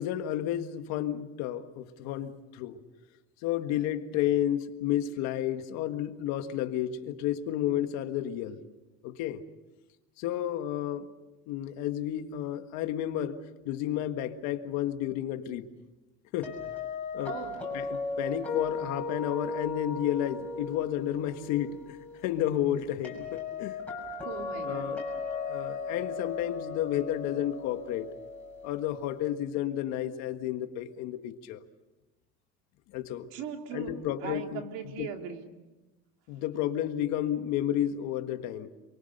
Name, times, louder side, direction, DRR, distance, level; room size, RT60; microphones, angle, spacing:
voice 1, 0.0-2.8 3.4-8.6 9.0-9.4 10.2-11.1 11.5-15.7 16.3-16.6 17.1-17.4 17.7-23.8 24.6-25.0 25.3-28.1 28.6-31.6 32.9-33.3 33.7-34.6 35.0-35.1 36.3-38.7, left 11 dB, 55° left, 8 dB, 1.6 m, -31 dB
sound 1, 16.4-29.3, left 4 dB, 5° left, 6.6 m, -37 dB
voice 2, 17.2-17.6 24.2-24.9 33.3-35.5, right 7 dB, 60° right, 4 dB, 2.9 m, -39 dB
28.5 x 23.5 x 6.7 m, 1.1 s
cardioid pair, 165°, 32 cm